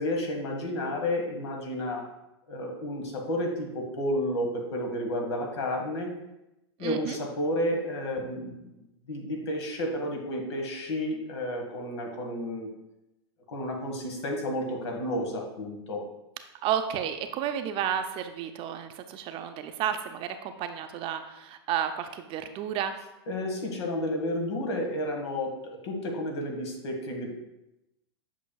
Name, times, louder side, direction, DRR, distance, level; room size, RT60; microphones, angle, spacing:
voice 1, 0.0-2.1 2.5-6.1 6.8-8.7 9.1-12.7 13.5-16.0 23.3-27.3, left 1 dB, 80° left, 2 dB, 1.6 m, -31 dB
voice 2, 6.8-7.2 16.6-22.9, right 9 dB, 40° right, 8 dB, 0.6 m, -32 dB
8.2 x 5.7 x 2.3 m, 0.91 s
hypercardioid pair, 120°, 15 cm